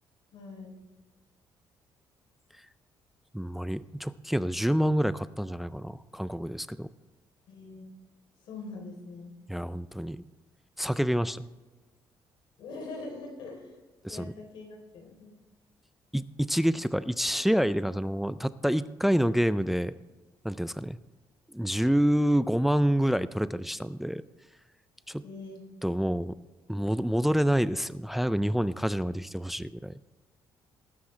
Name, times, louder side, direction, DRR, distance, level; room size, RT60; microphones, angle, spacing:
voice 1, 0.3-0.8 7.5-7.9 8.4-9.3 12.6-13.8 14.1-15.3 25.2-25.6, left 3 dB, 85° left, 2 dB, 3.5 m, -43 dB
voice 2, 3.3-6.9 9.5-10.2 10.8-11.5 14.0-14.3 16.1-19.9 20.4-21.0 21.5-24.2 25.1-25.2 25.8-26.4 26.7-29.9, equal, ahead, 15 dB, 0.3 m, -27 dB
19.0 x 9.6 x 3.3 m, 1.2 s
cardioid pair, 140°, 8 cm